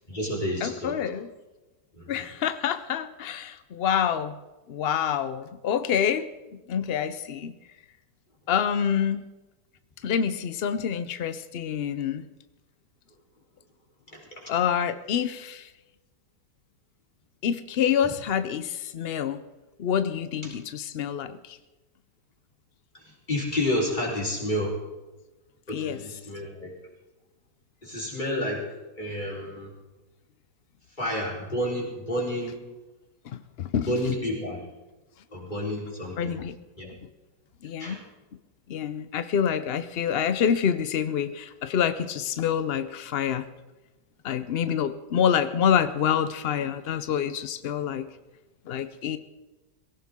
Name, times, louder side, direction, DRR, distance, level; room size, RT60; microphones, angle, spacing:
voice 1, 0.1-1.1 2.0-2.3 14.1-14.5 23.3-24.7 25.7-26.7 27.8-28.6 29.0-29.7 31.0-32.5 33.8-34.6 35.3-36.4 36.8-36.9 37.8-38.0, left 1 dB, 25° left, -2 dB, 4.1 m, -30 dB
voice 2, 0.6-1.3 2.1-4.4 4.7-6.3 6.7-7.5 8.5-9.2 10.0-12.3 14.5-15.7 17.4-19.4 19.8-21.6 25.7-26.0 33.3-34.1 36.2-36.5 37.6-38.0 38.7-43.5 44.2-48.1 48.7-49.2, left 8 dB, 70° left, 12 dB, 0.5 m, -27 dB
19.0 x 17.0 x 3.6 m, 1.1 s
omnidirectional pair, 1.8 m